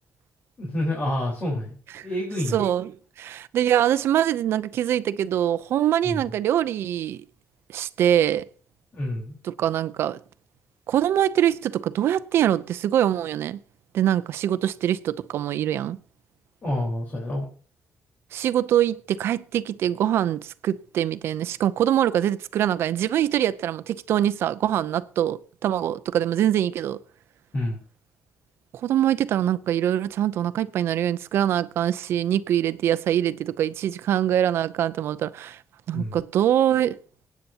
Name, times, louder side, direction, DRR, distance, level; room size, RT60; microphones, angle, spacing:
voice 1, 0.6-1.8 2.0-2.6 6.1-6.2 8.9-9.4 16.6-17.5 27.5-27.8 35.9-36.2, left 1 dB, 45° left, 4.2 m, -28 dB
voice 2, 2.5-7.2 7.7-8.4 9.4-10.2 10.9-13.6 13.9-16.0 18.3-27.0 28.8-35.6 35.9-37.0, right 11 dB, 80° right, 0.6 m, -24 dB
24.0 x 9.3 x 2.9 m
cardioid pair, 85°, 4 cm